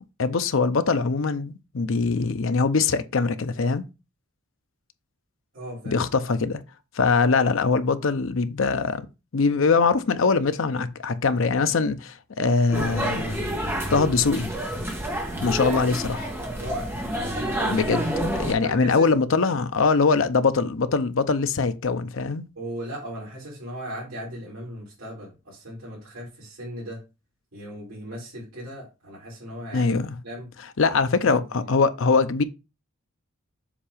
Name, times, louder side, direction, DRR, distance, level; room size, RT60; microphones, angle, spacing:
voice 1, 0.2-3.8 5.9-6.6 6.9-9.0 9.3-13.5 13.9-14.5 15.4-16.3 17.7-22.5 29.7-30.2 30.8-32.4, left 4 dB, 65° left, 0.6 m, -22 dB
voice 2, 5.5-6.0 16.5-18.1 18.6-19.1 22.6-27.0 27.5-30.0 30.2-30.5 31.2-31.7, equal, 75° right, 3.4 m, -37 dB
sound 1, 12.7-18.5, right 1 dB, 10° right, 1.0 m, -28 dB
7.3 x 2.8 x 4.9 m
head